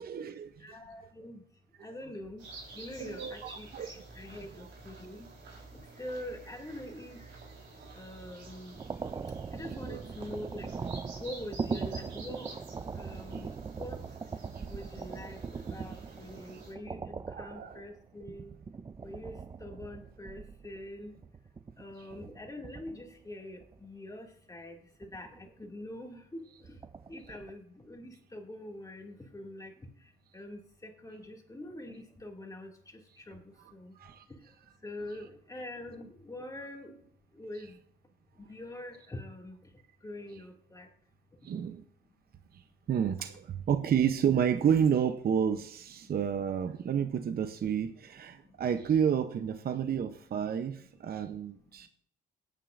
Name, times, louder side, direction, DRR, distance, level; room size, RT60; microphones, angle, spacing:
voice 1, 0.0-0.6 3.0-3.9 7.8-7.9 9.9-10.0 13.3-13.4 17.3-17.8 34.0-34.2 41.4-41.8 42.9-51.9, right 8 dB, 50° right, 0.7 m, -30 dB
voice 2, 0.6-1.4 1.8-2.4 2.7-5.3 6.0-7.2 7.9-8.8 9.5-10.7 11.2-12.5 12.9-13.5 13.8-14.0 14.7-15.4 15.7-17.0 17.4-18.5 19.0-19.3 19.6-21.1 21.8-26.4 27.1-29.7 30.3-32.7 33.2-33.4 33.7-33.9 34.8-36.9 37.4-37.8 38.5-39.6 40.0-40.9, left 1 dB, 15° left, 2.3 m, -44 dB
sound 1, 2.4-16.7, right 2 dB, 70° right, 4.1 m, -50 dB
sound 2, 8.7-23.2 23.6-23.8 25.0-25.6 26.6-27.5, right 5 dB, 20° right, 0.4 m, -41 dB
18.5 x 9.2 x 2.5 m
cardioid pair, 90°, 20 cm